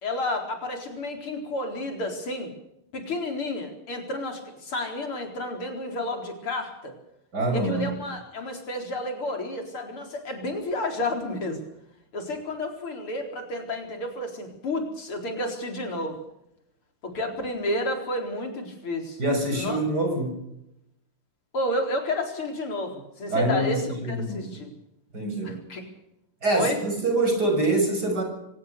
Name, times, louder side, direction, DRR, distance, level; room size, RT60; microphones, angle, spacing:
voice 1, 0.0-2.5 2.9-6.9 7.5-11.6 12.1-16.2 17.0-19.2 19.5-19.8 21.5-24.7 25.4-25.9 26.5-26.8, left 1 dB, 75° left, 4 dB, 5.2 m, -31 dB
voice 2, 7.3-8.0 19.2-20.4 23.3-24.6 25.1-25.6 26.4-28.2, right 2 dB, 45° right, 4 dB, 7.5 m, -25 dB
24.5 x 19.0 x 6.8 m, 0.81 s
omnidirectional pair, 2.4 m